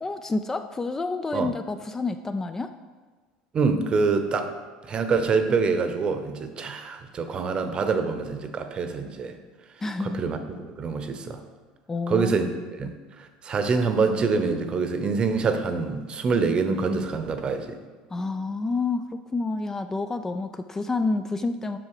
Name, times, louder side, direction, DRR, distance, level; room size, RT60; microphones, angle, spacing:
voice 1, 0.0-2.7 9.8-10.2 11.9-12.3 12.8-13.0 18.1-21.8, left 3 dB, 15° left, 8 dB, 0.4 m, -29 dB
voice 2, 3.5-4.5 4.9-9.4 10.0-10.4 10.8-11.4 12.1-12.5 12.8-17.8, right 4 dB, 35° right, 8 dB, 0.8 m, -25 dB
7.7 x 5.6 x 4.8 m, 1.4 s
supercardioid pair, 100°, 3 cm